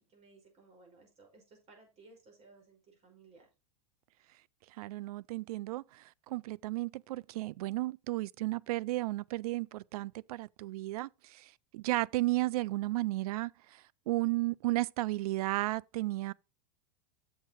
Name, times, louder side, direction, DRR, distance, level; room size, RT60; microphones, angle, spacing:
voice 1, 0.0-3.5, right 3 dB, 30° right, 5.4 m, -59 dB
voice 2, 4.7-16.3, right 18 dB, 65° right, 0.4 m, -34 dB
7.6 x 6.6 x 4.4 m
hypercardioid pair, 125°, 20 cm